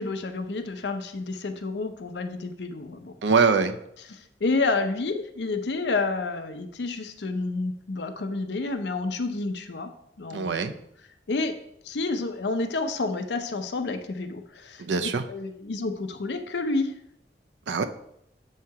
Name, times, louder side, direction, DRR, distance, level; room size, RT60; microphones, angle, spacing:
voice 1, 0.0-3.1 4.2-9.9 10.2-10.8 11.3-11.6 11.8-14.8 15.3-17.0, left 3 dB, 75° left, 8 dB, 0.6 m, -29 dB
voice 2, 3.2-3.8 10.3-10.7 14.8-15.3 17.7-17.8, right 5 dB, 90° right, 10 dB, 0.5 m, -23 dB
7.3 x 2.8 x 4.7 m, 0.75 s
head